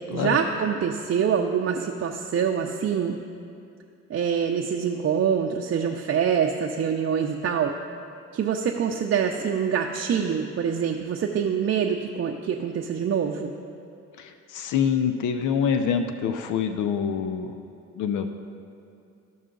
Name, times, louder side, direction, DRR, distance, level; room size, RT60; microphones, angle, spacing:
voice 1, 0.0-3.2 4.1-7.7 8.3-13.5, right 7 dB, 45° right, 1 dB, 0.5 m, -25 dB
voice 2, 14.2-17.5 18.0-18.3, left 7 dB, 80° left, 8 dB, 0.6 m, -25 dB
13.5 x 5.5 x 3.8 m, 2.5 s
cardioid pair, 90°, 30 cm